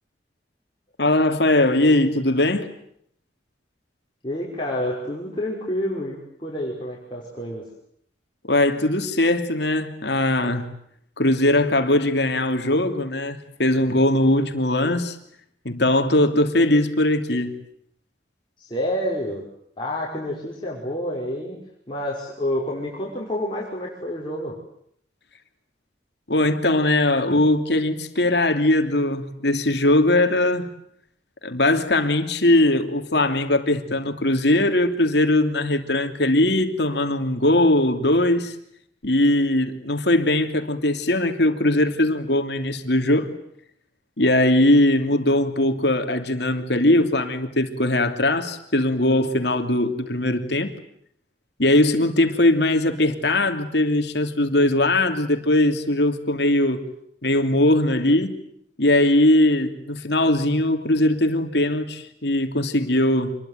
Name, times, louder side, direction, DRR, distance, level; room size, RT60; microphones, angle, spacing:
voice 1, 1.0-2.7 8.5-10.7 11.2-15.2 15.6-17.5 26.3-30.7 31.4-38.5 39.0-43.3 44.2-50.7 51.6-56.8 57.2-58.4 58.8-63.4, left 1 dB, 65° left, 3.0 m, -20 dB
voice 2, 4.2-7.6 18.6-19.4 19.8-21.6 21.9-24.5, left 1 dB, 25° left, 5.7 m, -28 dB
27.0 x 22.0 x 9.4 m
head